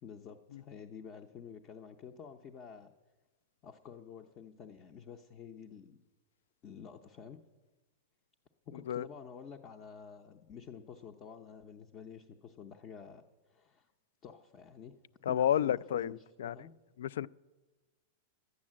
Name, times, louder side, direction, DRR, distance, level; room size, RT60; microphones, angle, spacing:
voice 1, 0.0-2.9 3.6-6.0 6.6-7.4 8.7-13.9 14.2-15.0 15.3-16.7, left 7 dB, 20° left, 0.5 m, -50 dB
voice 2, 15.3-16.1 16.4-16.5 17.0-17.3, left 10 dB, 75° left, 0.3 m, -30 dB
11.5 x 9.6 x 7.4 m
supercardioid pair, 175°, 0 cm